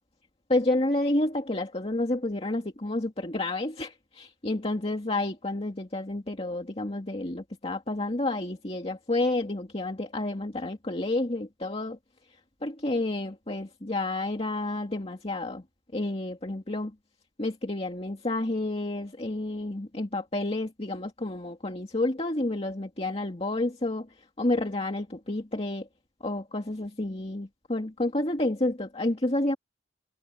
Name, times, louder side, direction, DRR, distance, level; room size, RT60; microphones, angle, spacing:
voice 1, 0.5-12.0 12.6-15.6 15.9-16.9 17.4-24.1 24.4-25.9 26.2-29.6, left 2 dB, 35° left, 2.2 m, -30 dB
head